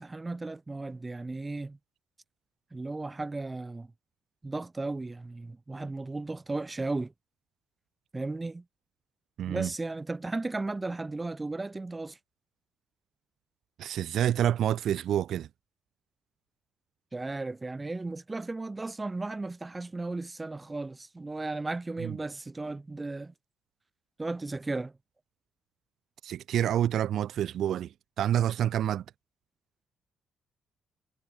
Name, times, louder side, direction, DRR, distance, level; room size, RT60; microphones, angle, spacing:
voice 1, 0.0-1.8 2.7-3.9 4.4-7.1 8.1-8.6 9.5-12.2 17.1-23.3 24.2-24.9, right 2 dB, 20° right, 2.3 m, -35 dB
voice 2, 9.4-9.7 13.8-15.5 22.0-22.2 26.2-27.9 28.2-29.0, right 11 dB, 70° right, 1.4 m, -28 dB
cardioid pair, 90°, 0 cm